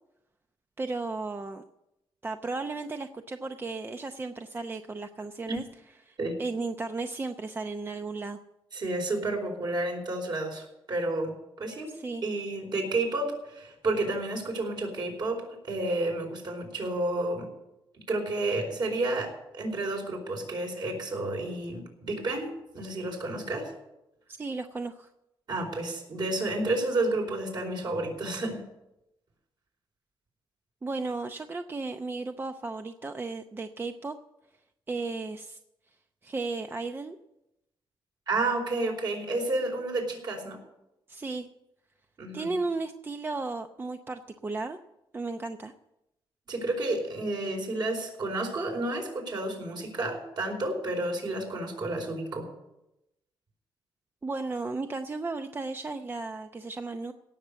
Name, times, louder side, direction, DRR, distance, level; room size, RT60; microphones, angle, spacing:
voice 1, 0.8-1.6 2.2-5.6 6.0-8.4 11.9-12.2 24.3-25.1 30.8-34.2 34.9-35.6 36.2-37.2 41.1-41.5 42.3-44.8 45.1-45.7 54.2-57.1, right 3 dB, 25° right, 7 dB, 0.7 m, -34 dB
voice 2, 8.7-11.9 12.2-17.5 18.1-23.7 25.5-28.7 38.3-40.6 42.2-42.6 46.5-52.5, right 2 dB, 50° right, 2 dB, 4.6 m, -31 dB
17.5 x 7.0 x 8.1 m, 0.90 s
cardioid pair, 115°, 9 cm